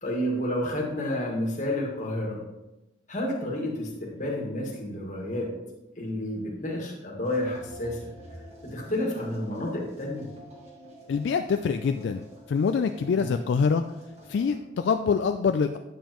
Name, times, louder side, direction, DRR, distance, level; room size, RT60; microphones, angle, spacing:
voice 1, 0.0-2.4 3.1-5.5 6.0-8.0 8.6-10.3 13.1-13.3, left 1 dB, 40° left, -1 dB, 1.7 m, -30 dB
sound 1, 7.2-14.6, equal, 35° right, 1.6 m, -48 dB
voice 2, 11.1-13.8 14.3-15.8, left 5 dB, 70° left, 7 dB, 0.3 m, -25 dB
9.0 x 7.1 x 3.0 m, 0.97 s
head